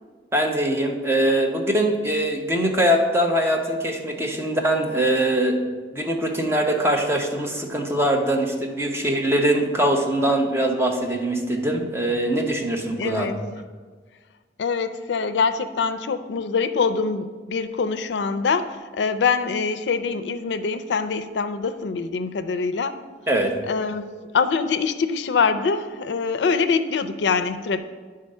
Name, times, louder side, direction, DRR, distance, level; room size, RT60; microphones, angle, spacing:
voice 1, 0.3-5.6 5.9-13.3 23.3-23.5, right 1 dB, 15° right, 1 dB, 0.8 m, -22 dB
voice 2, 13.0-13.3 14.6-23.0 23.7-27.8, left 5 dB, 75° left, 11 dB, 0.4 m, -24 dB
10.5 x 3.8 x 5.4 m, 1.5 s
head